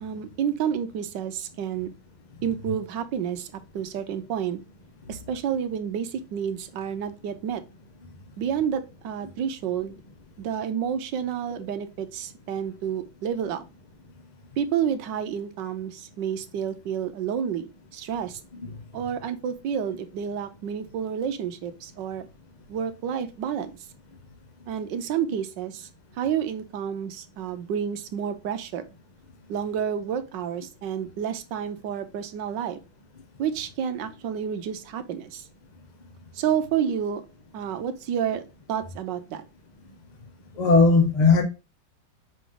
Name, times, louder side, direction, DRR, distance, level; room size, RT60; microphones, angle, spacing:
voice 1, 0.0-1.9 2.4-4.6 5.1-7.6 8.4-10.0 10.4-13.6 14.6-18.4 18.9-22.3 22.7-23.7 24.7-25.9 26.1-28.8 29.5-32.8 33.4-35.4 36.3-37.2 37.5-38.4 38.7-39.4, right 8 dB, 70° right, 1.3 m, -30 dB
voice 2, 40.6-41.4, left 4 dB, 45° left, 0.5 m, -17 dB
5.0 x 4.9 x 3.8 m
omnidirectional pair, 2.3 m